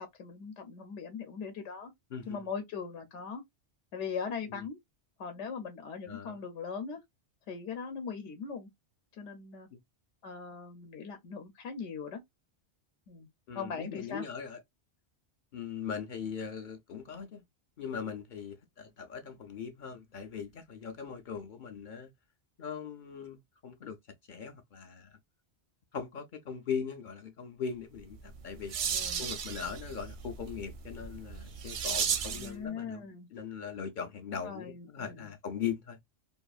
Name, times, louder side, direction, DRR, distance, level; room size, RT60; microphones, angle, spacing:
voice 1, 0.0-1.9 2.3-3.4 3.9-4.8 5.2-7.0 7.5-8.7 9.2-9.7 10.2-12.2 13.1-13.3 13.5-14.2 28.8-29.2 32.3-33.3 34.4-35.2, left 6 dB, 80° left, 0.9 m, -40 dB
voice 2, 2.1-2.5 4.5-4.6 6.1-6.4 9.7-9.8 13.5-14.6 15.5-17.4 17.8-22.1 22.6-24.0 24.3-25.2 25.9-28.8 29.2-36.0, left 7 dB, 60° left, 0.5 m, -40 dB
sound 1, 28.1-32.6, right 7 dB, 60° right, 0.5 m, -35 dB
2.7 x 2.4 x 2.3 m
omnidirectional pair, 1.2 m